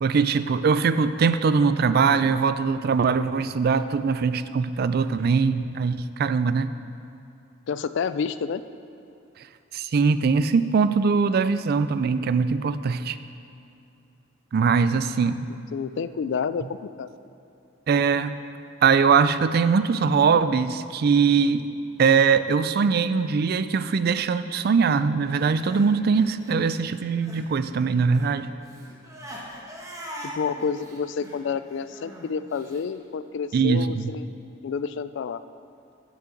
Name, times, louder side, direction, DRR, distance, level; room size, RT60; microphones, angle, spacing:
voice 1, 0.0-6.7 9.7-13.2 14.5-15.5 17.9-18.3 18.8-21.6 22.0-28.5 33.5-34.1, right 5 dB, 55° right, 12 dB, 0.4 m, -21 dB
voice 2, 7.7-8.6 15.7-17.1 30.2-34.3 34.6-35.4, left 6 dB, 65° left, 13 dB, 0.3 m, -29 dB
Crying sobbing, 25.3-27.5 27.8-32.8, equal, 15° right, 1.3 m, -42 dB
11.5 x 8.3 x 3.9 m, 2.6 s
head